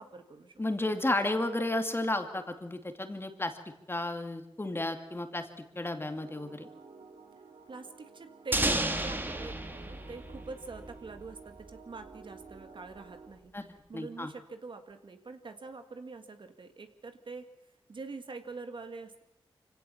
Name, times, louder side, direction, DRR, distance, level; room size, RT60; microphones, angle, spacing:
voice 1, 0.0-0.5 1.4-1.5 7.7-13.5 13.9-17.5 17.9-19.2, right 3 dB, 60° right, 7 dB, 1.8 m, -45 dB
voice 2, 0.6-3.6 3.9-5.5 5.8-6.7 13.5-14.3, left 1 dB, 25° left, 6 dB, 2.4 m, -32 dB
sound 1, 6.1-13.3, right 4 dB, 90° right, 2.2 m, -52 dB
sound 2, 8.5-11.3, right 1 dB, 20° right, 1.9 m, -32 dB
24.5 x 17.0 x 7.1 m, 0.87 s
cardioid pair, 60°, 9 cm